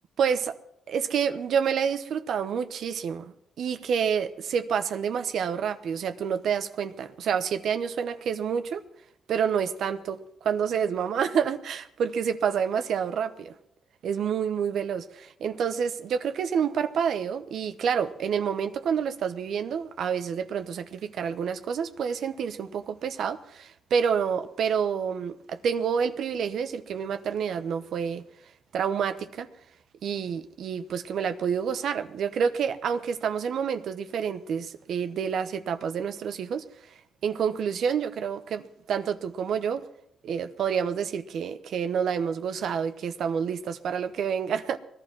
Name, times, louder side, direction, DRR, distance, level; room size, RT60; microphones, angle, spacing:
voice 1, 0.2-0.6 0.9-8.8 9.3-13.5 14.0-28.2 28.7-29.5 30.0-36.6 37.2-39.9 40.2-44.8, right 7 dB, 65° right, 10 dB, 0.9 m, -28 dB
19.0 x 12.0 x 6.1 m, 0.75 s
cardioid pair, 90°, 0 cm